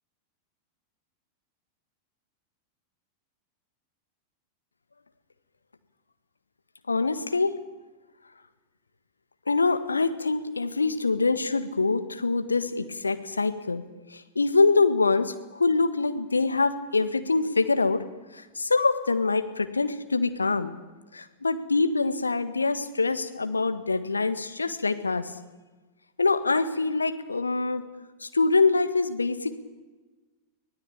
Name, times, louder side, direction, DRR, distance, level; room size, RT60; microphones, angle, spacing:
voice 1, 6.9-7.6 9.5-13.8 14.1-18.0 18.3-20.7 21.1-25.3 26.2-27.8 28.2-29.6, left 3 dB, 80° left, 9 dB, 1.6 m, -24 dB
25.0 x 18.0 x 8.8 m, 1.2 s
figure-of-eight pair, 90°, 0 cm